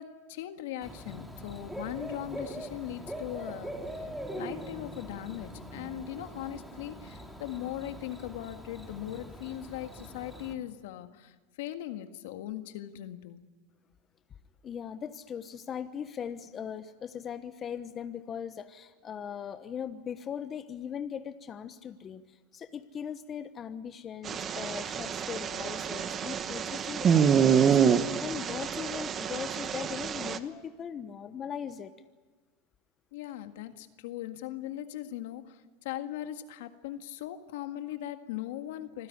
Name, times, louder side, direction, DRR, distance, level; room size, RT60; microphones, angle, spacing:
voice 1, 0.0-13.4 33.1-39.1, left 12 dB, 75° left, 8 dB, 1.8 m, -39 dB
Bird / Cricket, 0.8-10.5, right 1 dB, 5° right, 3.0 m, -42 dB
voice 2, 14.6-31.9, left 8 dB, 30° left, 10 dB, 1.0 m, -39 dB
sound 1, 24.2-30.4, right 7 dB, 30° right, 1.1 m, -27 dB
26.0 x 15.5 x 9.9 m, 1.3 s
supercardioid pair, 125°, 0 cm